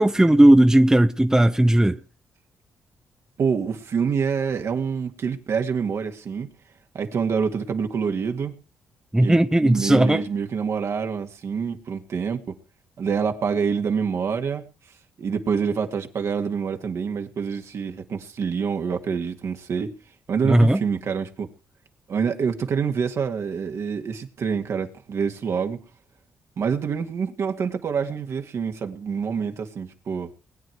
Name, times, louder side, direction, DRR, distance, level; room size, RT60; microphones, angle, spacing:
voice 1, 0.0-2.0 9.1-10.2 20.4-20.8, right 1 dB, 10° right, 0.9 m, -16 dB
voice 2, 3.4-6.5 6.9-8.5 9.2-12.6 13.0-14.6 15.2-19.9 20.3-21.5 22.1-25.8 26.6-30.3, right 6 dB, 60° right, 2.0 m, -26 dB
20.5 x 9.3 x 4.7 m
hypercardioid pair, 45°, 5 cm